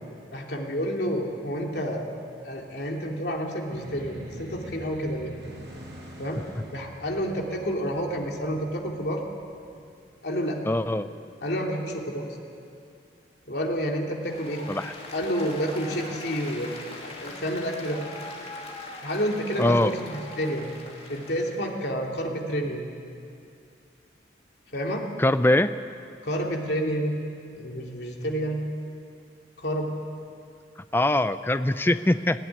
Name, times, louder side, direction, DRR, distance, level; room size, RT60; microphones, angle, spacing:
voice 1, 0.3-2.0 2.4-5.3 6.2-6.4 6.7-9.2 10.2-10.6 11.4-12.4 13.5-14.6 15.1-18.0 19.0-20.7 21.1-22.8 24.7-25.0 26.2-27.2 27.6-28.6 29.6-29.9, equal, 65° left, 0 dB, 2.8 m, -29 dB
sound 1, 3.6-10.2, equal, 75° right, 6.5 m, -45 dB
voice 2, 10.6-11.1 14.7-14.9 19.6-19.9 25.2-25.7 30.9-32.4, left 1 dB, 10° left, 12 dB, 0.4 m, -22 dB
Applause, 14.2-21.7, left 2 dB, 35° left, 2.7 m, -41 dB
18.5 x 16.5 x 9.9 m, 2.4 s
head